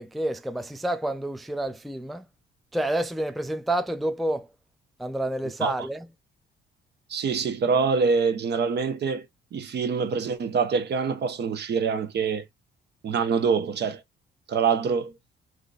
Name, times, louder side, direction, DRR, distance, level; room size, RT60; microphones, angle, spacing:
voice 1, 0.0-2.3 2.7-4.5 5.0-6.1, right 1 dB, ahead, 0.4 m, -29 dB
voice 2, 7.1-9.3 9.5-12.4 13.0-14.0 14.5-15.1, right 5 dB, 60° right, 0.9 m, -25 dB
3.7 x 2.7 x 2.5 m
cardioid pair, 90°, 20 cm